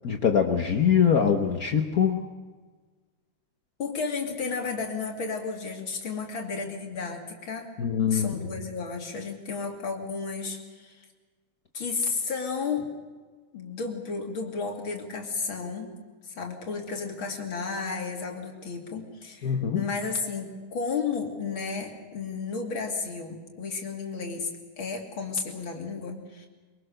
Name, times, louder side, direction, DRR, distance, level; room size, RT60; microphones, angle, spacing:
voice 1, 0.0-2.2 7.8-8.3 19.4-19.8, left 7 dB, 80° left, 4 dB, 0.8 m, -23 dB
voice 2, 3.8-7.7 8.1-11.0 11.7-12.9 13.5-15.9 16.2-24.5 24.8-26.5, left 5 dB, 45° left, 1 dB, 3.1 m, -33 dB
23.0 x 23.0 x 6.6 m, 1.4 s
omnidirectional pair, 3.3 m